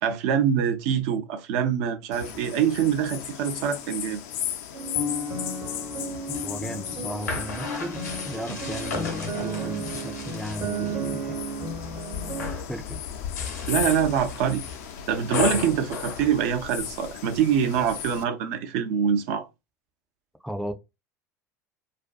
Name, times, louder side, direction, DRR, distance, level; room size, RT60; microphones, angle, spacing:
voice 1, 0.0-4.2 13.7-14.6 15.1-19.5, right 8 dB, 60° right, 0.5 m, -24 dB
sound 1, 2.1-18.2, left 10 dB, 60° left, 0.4 m, -36 dB
sound 2, 4.7-12.5, right 2 dB, 40° right, 0.8 m, -33 dB
sound 3, 6.1-11.0 11.4-11.9 12.2-12.7 13.2-17.1, left 4 dB, 80° left, 1.0 m, -35 dB
voice 2, 6.4-11.4 12.7-13.0 15.5-15.7 20.4-20.7, equal, ahead, 0.4 m, -35 dB
2.5 x 2.2 x 2.4 m
figure-of-eight pair, 75°, 9 cm